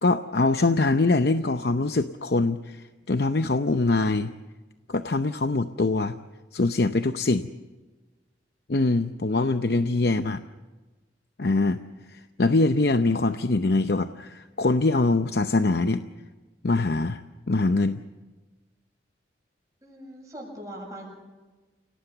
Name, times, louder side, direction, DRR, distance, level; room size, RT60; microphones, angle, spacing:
voice 1, 0.0-4.3 4.9-6.2 6.5-7.5 8.7-10.4 11.4-11.8 12.1-16.0 16.6-17.2 17.5-18.0, left 2 dB, 65° left, 9 dB, 0.7 m, -23 dB
voice 2, 9.8-10.4 19.8-21.1, right 1 dB, 20° right, -3 dB, 7.6 m, -42 dB
29.5 x 18.0 x 6.9 m, 1.2 s
head